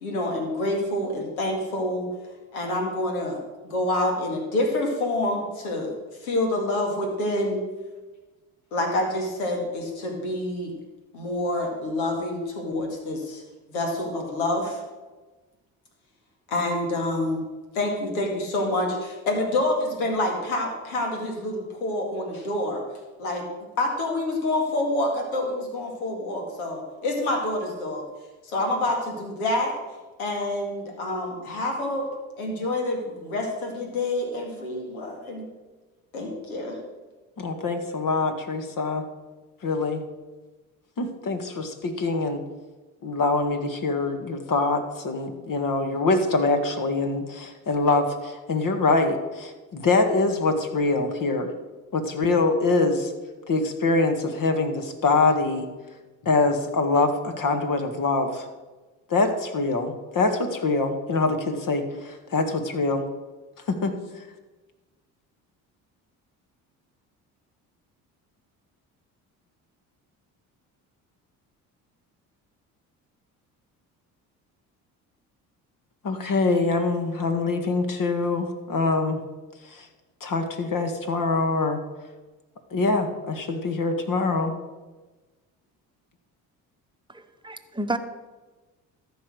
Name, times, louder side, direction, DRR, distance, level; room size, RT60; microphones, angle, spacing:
voice 1, 0.0-2.1 2.5-6.0 6.2-7.6 8.7-10.7 11.1-13.4 13.7-14.8 16.5-17.4 17.7-22.8 23.2-23.4 23.8-28.0 28.4-29.7 30.2-32.1 32.4-35.5 36.1-36.8, left 1 dB, 90° left, 2 dB, 2.2 m, -27 dB
voice 2, 37.4-39.1 39.6-40.0 41.0-42.4 43.0-51.5 51.9-53.1 53.5-55.7 56.2-58.5 59.1-63.0 63.7-64.2 76.0-79.2 79.6-79.9 80.2-81.8 82.7-84.5, left 3 dB, 50° left, 7 dB, 1.8 m, -24 dB
voice 3, 87.1-88.0, right 2 dB, 10° right, 8 dB, 1.0 m, -31 dB
13.5 x 5.5 x 6.4 m, 1.2 s
hypercardioid pair, 55°, 42 cm